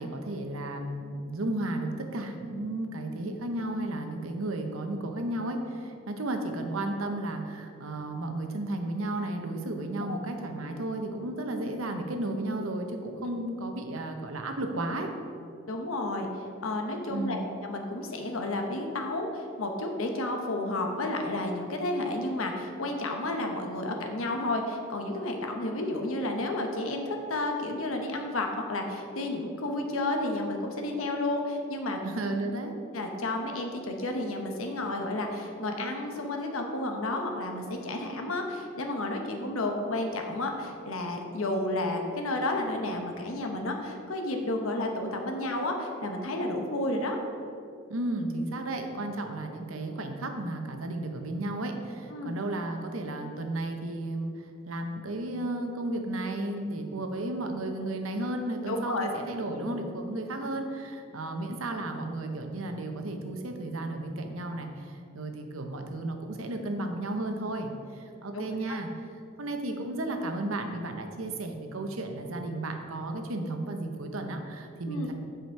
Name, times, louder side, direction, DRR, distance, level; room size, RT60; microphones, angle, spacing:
voice 1, 0.0-15.1 17.1-17.4 32.0-32.7 47.9-68.9 69.4-75.1, right 1 dB, 75° right, 5 dB, 0.9 m, -33 dB
voice 2, 15.7-16.3 16.6-32.0 32.9-47.2 52.1-52.4 58.7-59.1 68.3-68.8 74.9-75.1, left 2 dB, 80° left, 3 dB, 1.0 m, -31 dB
9.2 x 5.1 x 4.6 m, 2.5 s
head